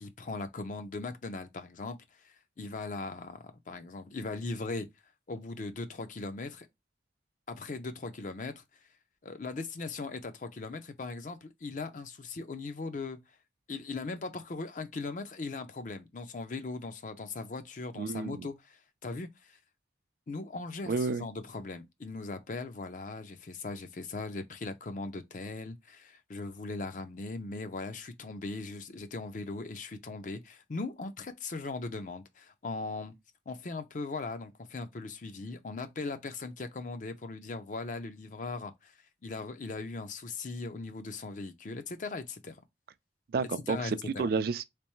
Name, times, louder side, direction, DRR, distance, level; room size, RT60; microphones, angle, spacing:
voice 1, 0.0-4.9 5.3-6.7 7.5-8.6 9.2-13.2 13.7-19.6 20.3-33.1 33.5-38.9 39.2-42.6 43.7-44.3, left 3 dB, 45° left, 0.5 m, -39 dB
voice 2, 18.0-18.5 20.9-21.2 43.3-43.9 44.2-44.6, right 4 dB, 60° right, 0.3 m, -30 dB
3.3 x 3.1 x 3.0 m
head